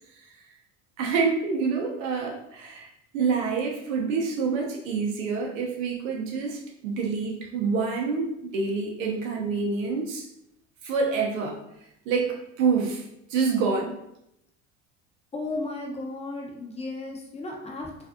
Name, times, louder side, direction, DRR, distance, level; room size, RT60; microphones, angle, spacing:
voice 1, 1.0-2.9 3.1-10.3 10.8-11.6 12.1-13.0 13.3-14.0, right 5 dB, 85° right, 0 dB, 0.7 m, -27 dB
voice 2, 15.3-18.1, left 2 dB, 15° left, -1 dB, 0.7 m, -34 dB
2.5 x 2.4 x 2.5 m, 0.80 s
hypercardioid pair, 75°, 38 cm